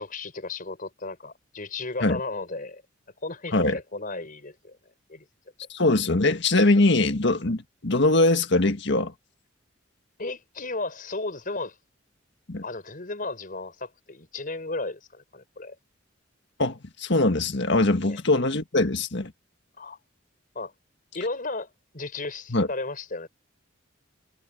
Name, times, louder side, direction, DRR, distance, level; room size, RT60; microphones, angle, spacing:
voice 1, 0.0-2.8 3.2-4.8 5.1-5.2 10.2-11.7 12.6-15.7 18.1-18.2 19.8-20.0 20.5-20.7 21.1-23.3, left 3 dB, 45° left, 5.0 m, -34 dB
voice 2, 5.7-9.1 12.5-12.6 16.6-19.3 22.5-22.7, left 2 dB, 60° left, 1.8 m, -22 dB
head